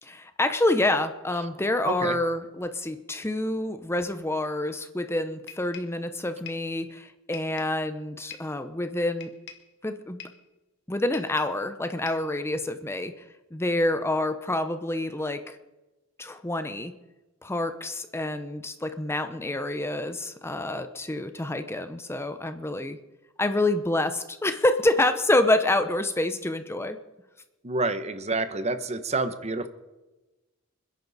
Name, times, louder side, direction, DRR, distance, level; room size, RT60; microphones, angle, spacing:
voice 1, 0.0-9.3 9.8-10.2 10.9-13.1 13.5-15.6 16.2-16.9 17.4-23.0 23.4-27.0, left 1 dB, 10° left, 9 dB, 0.7 m, -27 dB
voice 2, 1.8-2.2 27.6-29.7, right 3 dB, 30° right, 11 dB, 1.0 m, -28 dB
sound 1, 5.5-6.0 6.5-6.7 7.3-7.8 8.3-8.6 9.2-9.7 10.2-10.5 11.1-11.6 12.1-12.3, left 9 dB, 55° left, 1.7 m, -44 dB
26.5 x 10.5 x 4.1 m, 1.1 s
head